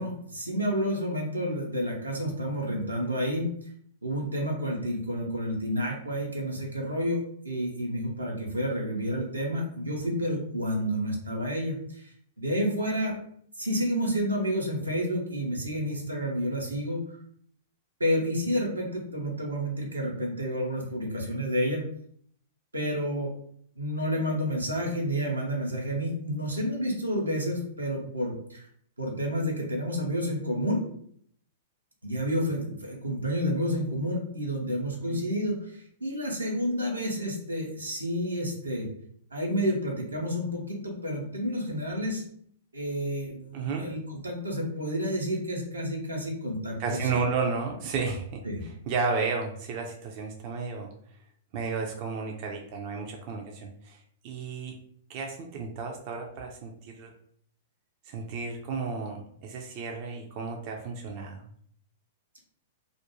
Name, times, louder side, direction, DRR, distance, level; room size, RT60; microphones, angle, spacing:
voice 1, 0.0-3.5 4.0-13.1 13.6-17.0 18.0-21.8 22.7-23.3 23.8-28.7 29.0-30.8 32.0-38.9 39.3-42.2 42.7-47.1 48.4-48.7, equal, 85° right, -1 dB, 0.7 m, -30 dB
voice 2, 43.5-43.8 46.8-48.4 48.9-50.9 51.5-54.7 55.1-57.1 58.0-61.5, right 4 dB, 40° right, 1 dB, 0.4 m, -32 dB
2.4 x 2.2 x 2.9 m, 0.64 s
figure-of-eight pair, 105°, 0 cm